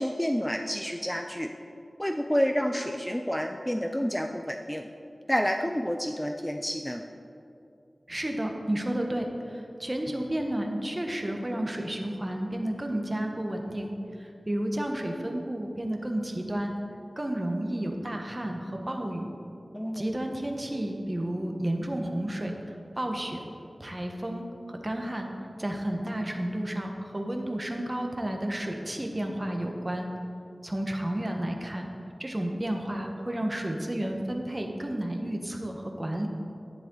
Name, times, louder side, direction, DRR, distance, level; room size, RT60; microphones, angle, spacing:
voice 1, 0.0-1.5 2.0-4.8 5.3-7.0 19.7-20.0, equal, 10° left, 4 dB, 0.5 m, -29 dB
voice 2, 8.1-16.7 17.2-19.3 19.9-23.4 23.8-25.3 25.6-30.1 30.6-31.9 32.2-36.3, right 1 dB, 25° right, 3 dB, 1.2 m, -32 dB
10.5 x 9.9 x 3.9 m, 2.7 s
wide cardioid pair, 70°, 0 cm